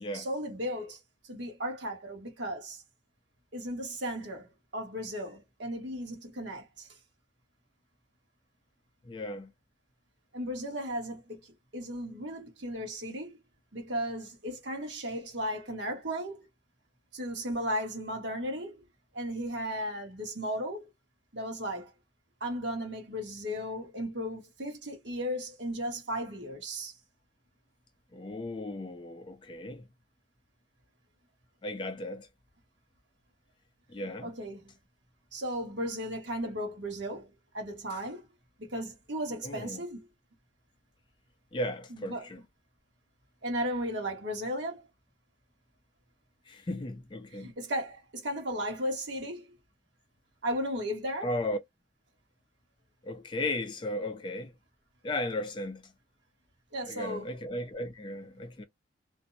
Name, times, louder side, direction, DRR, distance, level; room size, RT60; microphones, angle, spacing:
voice 1, 0.0-2.8 3.5-6.9 10.3-11.4 11.7-13.4 13.7-16.4 17.1-18.8 19.1-20.9 21.3-21.9 22.4-26.9 34.2-34.7 35.3-38.2 38.6-40.1 41.9-42.3 43.4-44.9 47.3-49.5 50.4-51.3 56.7-57.3, equal, 65° right, 1.1 m, -35 dB
voice 2, 9.1-9.5 28.1-29.8 31.6-32.3 33.9-34.3 39.4-39.8 41.5-42.4 46.5-47.5 51.2-51.6 53.0-54.5 55.0-55.9 56.8-58.6, left 1 dB, 25° left, 0.3 m, -35 dB
2.5 x 2.0 x 2.5 m
head